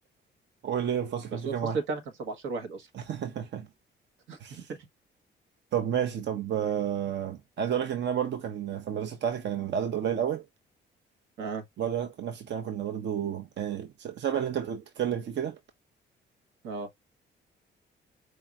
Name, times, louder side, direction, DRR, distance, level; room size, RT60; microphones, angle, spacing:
voice 1, 0.6-1.8 2.9-3.7 4.4-4.7 5.7-10.4 11.8-15.6, right 9 dB, 60° right, 0.8 m, -31 dB
voice 2, 1.4-2.9 4.3-4.6 11.4-11.6 16.6-16.9, right 4 dB, 85° right, 1.4 m, -34 dB
4.6 x 2.9 x 2.5 m
cardioid pair, 90°, 20 cm